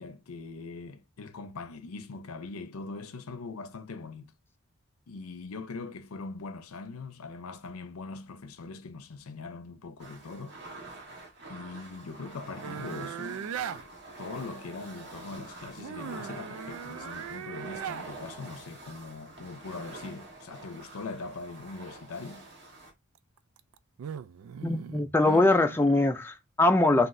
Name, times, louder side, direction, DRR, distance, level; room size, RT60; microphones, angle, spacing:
voice 1, 0.0-4.3 5.1-10.9 11.5-13.5 14.2-22.5, left 3 dB, 85° left, 0.6 m, -41 dB
sound 1, 10.0-22.9, right 2 dB, 55° right, 1.4 m, -46 dB
sound 2, 12.6-13.8 15.8-18.1 23.4-26.1, right 8 dB, 70° right, 0.3 m, -39 dB
voice 2, 24.6-27.1, left 2 dB, 10° left, 0.4 m, -23 dB
5.7 x 2.8 x 2.6 m
head